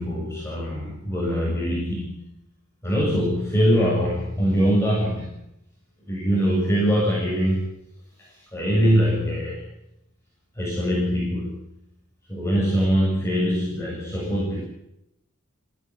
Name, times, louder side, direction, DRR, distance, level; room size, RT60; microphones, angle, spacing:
voice 1, 0.0-2.3 2.8-5.4 6.1-7.7 8.2-9.7 10.5-11.6 12.3-14.6, equal, 15° left, -5 dB, 7.8 m, -23 dB
26.5 x 17.0 x 9.9 m, 0.85 s
head